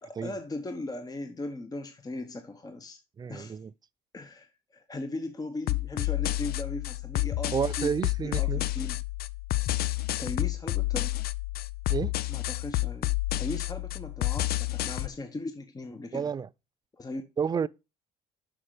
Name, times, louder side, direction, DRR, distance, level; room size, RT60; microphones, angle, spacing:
voice 1, 0.0-3.0 3.3-3.6 4.1-4.5 4.7-9.0 10.2-11.1 12.3-13.1 13.4-16.3 17.0-17.2, left 2 dB, 20° left, 1.0 m, -38 dB
voice 2, 3.2-3.7 7.5-8.6 11.9-12.1 16.1-16.5 17.4-17.7, right 6 dB, 25° right, 0.3 m, -30 dB
sound 1, 5.7-15.1, left 17 dB, 65° left, 0.6 m, -30 dB
6.5 x 6.3 x 4.7 m
cardioid pair, 110°, 17 cm